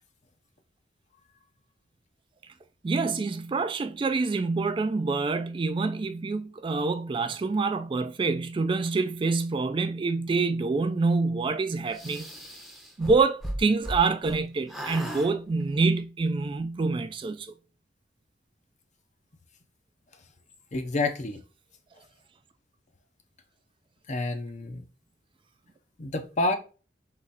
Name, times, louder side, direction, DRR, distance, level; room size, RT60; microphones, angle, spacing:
voice 1, 2.8-12.3 13.0-17.5, right 3 dB, 30° right, 0.3 m, -26 dB
sound 1, 11.9-14.4 14.7-15.3, equal, ahead, 0.7 m, -37 dB
voice 2, 20.7-21.4 24.1-24.8 26.0-26.6, left 2 dB, 40° left, 0.7 m, -28 dB
3.8 x 3.1 x 4.1 m
head